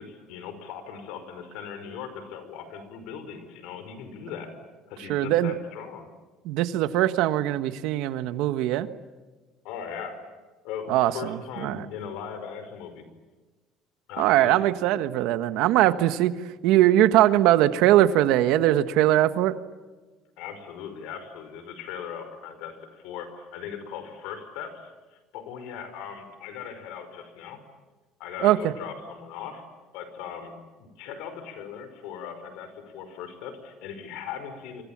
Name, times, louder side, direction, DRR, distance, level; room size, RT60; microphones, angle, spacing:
voice 1, 0.0-4.5 4.9-6.1 9.6-10.2 10.6-13.0 14.1-14.7 20.4-27.6 28.2-29.6 29.9-34.8, left 7 dB, 85° left, 9 dB, 5.3 m, -39 dB
voice 2, 5.1-5.5 6.4-8.9 10.9-11.8 14.2-16.3 16.6-19.5 28.4-28.7, right 13 dB, 75° right, 12 dB, 1.3 m, -21 dB
28.5 x 25.0 x 7.4 m, 1.3 s
cardioid pair, 160°, 0 cm